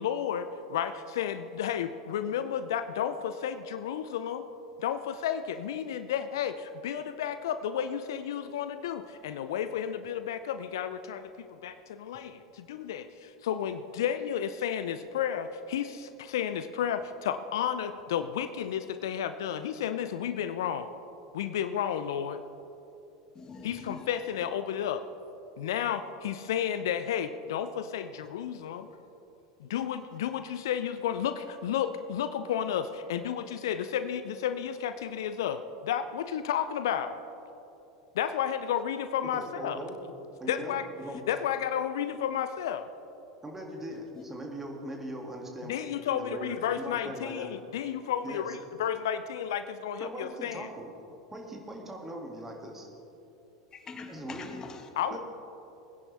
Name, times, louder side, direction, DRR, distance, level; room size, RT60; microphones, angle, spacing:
voice 1, 0.0-4.4 4.8-20.9 21.3-22.4 23.6-25.0 25.6-28.9 29.6-37.2 38.1-39.8 40.5-40.9 41.3-42.9 45.6-50.7 55.0-55.2, left 9 dB, 65° left, 11 dB, 0.5 m, -32 dB
voice 2, 23.3-24.3 44.1-44.2 53.7-54.9, left 4 dB, 30° left, 5 dB, 1.4 m, -44 dB
voice 3, 39.3-40.0 40.4-41.2 43.4-45.7 46.1-47.5 48.2-48.6 50.0-50.9 51.3-52.9 54.1-54.5 55.1-55.2, right 1 dB, 15° right, 0 dB, 2.2 m, -40 dB
20.5 x 10.0 x 3.4 m, 2.9 s
figure-of-eight pair, 80°, 2 cm